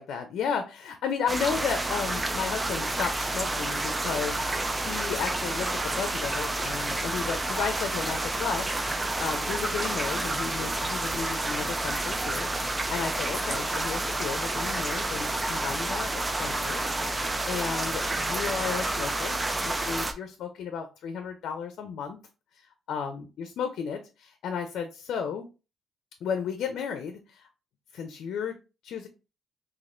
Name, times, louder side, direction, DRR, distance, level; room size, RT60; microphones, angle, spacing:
voice 1, 0.0-16.1 16.4-16.8 17.1-19.4 19.6-22.2 22.9-25.4 26.2-27.4 27.9-28.6 28.8-29.1, left 6 dB, 75° left, 6 dB, 0.6 m, -33 dB
sound 1, 1.3-20.1, right 2 dB, 20° right, 0.5 m, -29 dB
4.2 x 2.7 x 2.5 m, 0.30 s
cardioid pair, 90°, 0 cm